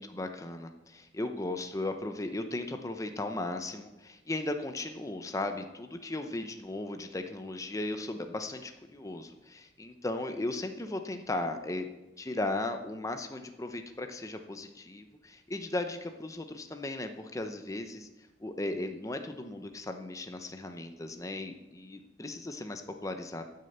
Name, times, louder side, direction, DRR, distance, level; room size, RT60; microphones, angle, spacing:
voice 1, 0.0-11.9 12.2-18.1 18.4-23.4, left 2 dB, 20° left, 6 dB, 0.7 m, -36 dB
13.0 x 6.6 x 7.8 m, 1.0 s
head